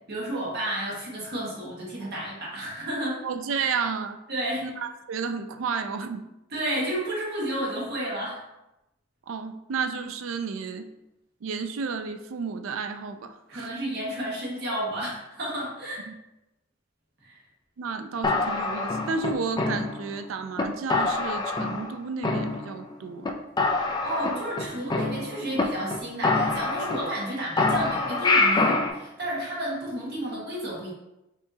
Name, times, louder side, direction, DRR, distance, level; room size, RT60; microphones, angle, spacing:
voice 1, 0.1-3.2 4.3-4.6 6.5-8.4 13.5-16.1 17.2-17.4 23.7-30.9, right 1 dB, 55° right, -5 dB, 1.4 m, -31 dB
voice 2, 3.2-4.2 4.6-6.2 9.3-10.9 11.4-13.7 16.1-16.2 17.8-23.3 24.3-24.4, right 5 dB, 80° right, 9 dB, 0.4 m, -32 dB
sound 1, 18.2-20.2 20.6-20.7 20.9-21.9 22.2-22.9 23.2-23.3 23.6-25.6 25.9-26.0 26.2-27.3 27.6-28.9, left 3 dB, 20° left, 0.3 m, -25 dB
4.9 x 2.7 x 2.7 m, 0.91 s
head